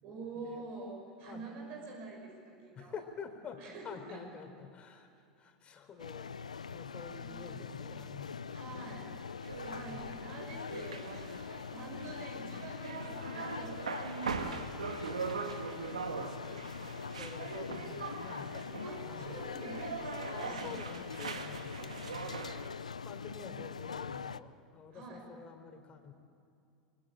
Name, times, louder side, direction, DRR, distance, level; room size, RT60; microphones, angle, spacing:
voice 1, 0.0-2.9 3.6-4.2 7.2-7.4 8.5-9.2 9.6-14.5 14.8-15.7 18.8-20.7 21.5-22.4 24.9-25.3, right 3 dB, 55° right, 1 dB, 6.5 m, -47 dB
voice 2, 1.2-1.8 2.7-9.0 9.7-10.0 16.2-16.4 17.1-19.4 20.3-22.3 22.8-26.1, left 6 dB, 35° left, 6 dB, 4.0 m, -49 dB
sound 1, 6.0-24.4, left 6 dB, 90° left, 0.6 m, -43 dB
sound 2, 9.4-22.7, right 5 dB, 85° right, 1.9 m, -42 dB
26.0 x 23.0 x 9.1 m, 2.4 s
hypercardioid pair, 85°, 4 cm